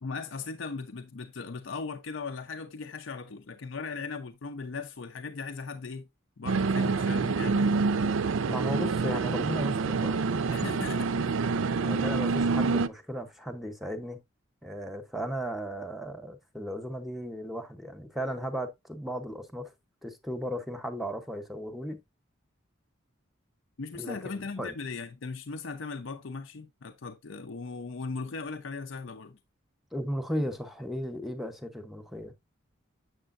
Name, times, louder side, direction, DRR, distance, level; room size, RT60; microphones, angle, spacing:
voice 1, 0.0-6.0 6.4-7.8 10.5-11.4 23.8-29.4, left 4 dB, 70° left, 0.6 m, -38 dB
sound 1, 6.5-12.9, right 4 dB, 85° right, 0.5 m, -27 dB
voice 2, 8.5-10.6 11.8-14.2 14.6-19.7 20.0-22.0 23.9-24.8 29.9-32.3, equal, ahead, 0.7 m, -35 dB
7.8 x 6.7 x 2.4 m
head